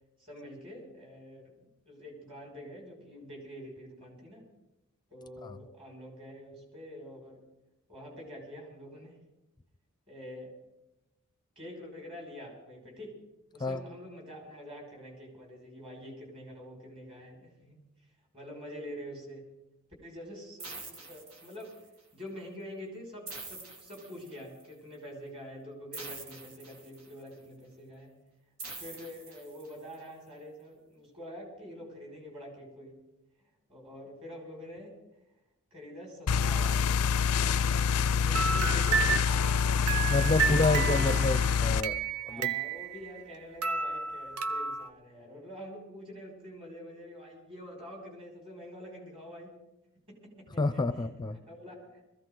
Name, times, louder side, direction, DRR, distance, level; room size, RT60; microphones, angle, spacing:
voice 1, 0.2-4.5 5.1-7.4 7.9-9.2 10.1-10.5 11.6-13.2 13.5-19.5 20.0-21.8 22.1-28.2 28.8-33.0 33.7-34.9 35.7-36.9 37.3-39.1 40.2-41.1 42.2-49.6 50.1-52.0, equal, 25° right, -1 dB, 6.0 m, -46 dB
sound 1, 20.6-21.9 23.3-24.6 25.9-27.3 28.6-29.9, right 3 dB, 70° right, 2.4 m, -45 dB
sound 2, 36.3-41.8, left 6 dB, 85° left, 0.5 m, -26 dB
sound 3, 38.3-43.3 43.6-44.9, right 6 dB, 85° right, 0.9 m, -32 dB
voice 2, 40.1-42.5 50.6-51.4, left 2 dB, 20° left, 11 dB, 0.6 m, -29 dB
22.5 x 15.5 x 3.9 m, 0.93 s
head